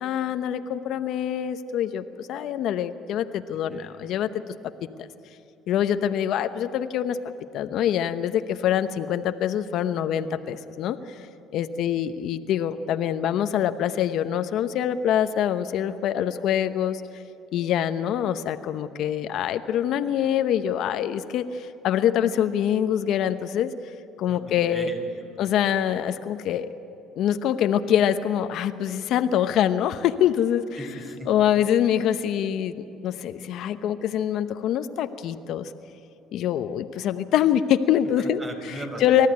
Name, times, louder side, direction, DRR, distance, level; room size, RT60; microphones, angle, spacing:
voice 1, 0.0-4.3 5.7-7.2 7.5-11.3 11.5-17.2 17.5-23.7 24.2-24.9 25.4-26.7 27.2-30.7 31.3-35.7 36.3-38.4 39.0-39.3, left 10 dB, 65° left, 10 dB, 0.8 m, -25 dB
voice 2, 3.5-4.0 24.3-25.4 30.8-31.4 38.2-39.3, right 1 dB, 25° right, 4 dB, 4.4 m, -39 dB
26.0 x 14.0 x 9.5 m, 2.9 s
cardioid pair, 110°, 0 cm